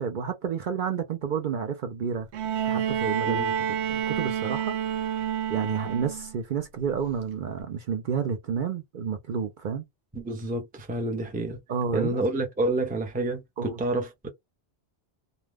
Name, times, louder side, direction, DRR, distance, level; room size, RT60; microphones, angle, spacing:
voice 1, 0.0-2.3 2.6-3.5 3.9-5.2 5.5-9.8 11.7-12.2 13.6-13.8, right 6 dB, 55° right, 0.6 m, -30 dB
Bowed string instrument, 2.3-6.4 7.6-7.7, right 9 dB, 85° right, 0.9 m, -29 dB
voice 2, 10.1-11.6 11.9-14.3, right 2 dB, 10° right, 0.4 m, -29 dB
2.4 x 2.2 x 3.3 m
omnidirectional pair, 1.1 m